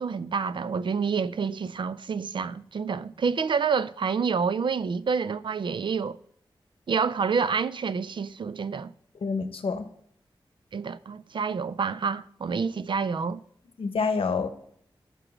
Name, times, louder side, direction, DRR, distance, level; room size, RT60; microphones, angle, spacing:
voice 1, 0.0-6.2 6.9-8.9 10.7-13.4, right 5 dB, 60° right, 0.4 m, -28 dB
voice 2, 9.2-9.9 13.8-14.5, left 5 dB, 90° left, 0.8 m, -27 dB
6.1 x 4.9 x 6.1 m
wide cardioid pair, 100°, 9 cm